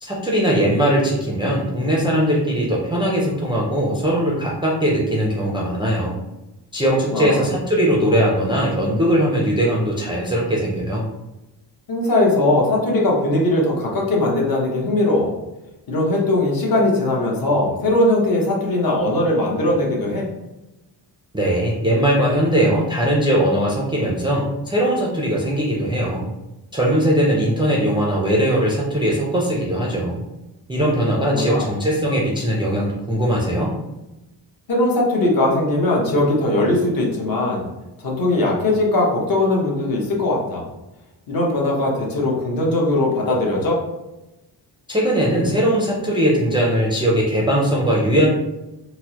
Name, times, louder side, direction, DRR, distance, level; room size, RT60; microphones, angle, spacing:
voice 1, 0.0-6.2 6.7-11.0 21.3-26.2 26.7-30.2 30.7-33.7 44.9-48.3, equal, 10° right, -4 dB, 0.4 m, -20 dB
voice 2, 7.1-7.4 11.9-15.3 15.9-20.3 31.2-31.6 34.7-37.7 38.0-40.6 41.3-43.8, left 1 dB, 50° left, -2 dB, 0.9 m, -20 dB
4.3 x 2.0 x 2.8 m, 0.97 s
wide cardioid pair, 160°, 44 cm